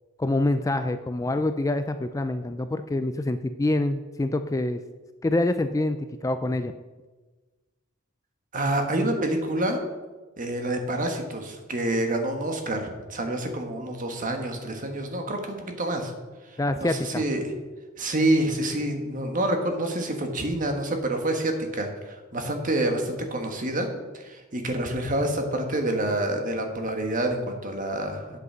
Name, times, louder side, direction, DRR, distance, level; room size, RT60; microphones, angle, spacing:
voice 1, 0.2-4.8 5.2-6.7 16.6-17.2, left 2 dB, 15° left, 9 dB, 0.3 m, -26 dB
voice 2, 8.5-9.8 10.4-16.1 16.5-17.4 18.0-23.9 24.1-28.4, right 1 dB, 40° right, 4 dB, 1.5 m, -27 dB
8.2 x 8.0 x 6.2 m, 1.3 s
head